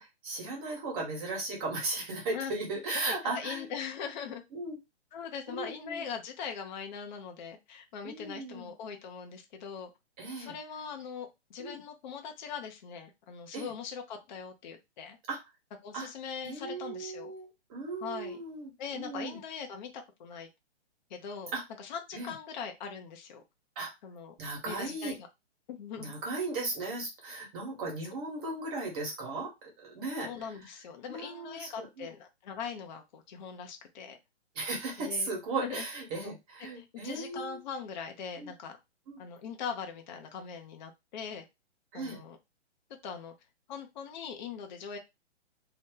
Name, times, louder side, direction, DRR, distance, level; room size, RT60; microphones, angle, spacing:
voice 1, 0.0-3.7 4.5-4.8 5.5-6.0 8.0-8.7 10.2-10.5 11.6-11.8 13.5-13.7 15.3-15.4 15.9-16.1 16.4-19.4 21.5-21.6 22.1-22.3 23.7-23.9 24.4-25.1 26.0-29.5 29.8-30.3 31.1-32.1 34.5-37.6 38.4-38.5 39.1-39.2 41.9-42.2, right 3 dB, 35° right, 1.3 m, -36 dB
voice 2, 3.0-4.4 5.1-9.9 10.4-15.2 15.8-17.3 18.0-18.4 18.8-20.5 21.1-21.5 21.8-23.4 24.0-24.3 24.6-25.2 25.7-26.1 30.2-34.2 35.0-35.3 35.6-35.8 36.2-36.3 36.6-38.8 39.2-41.4 41.9-42.4 43.0-43.3 43.7-45.0, left 6 dB, 40° left, 0.5 m, -41 dB
2.7 x 2.1 x 3.6 m
hypercardioid pair, 145°, 35 cm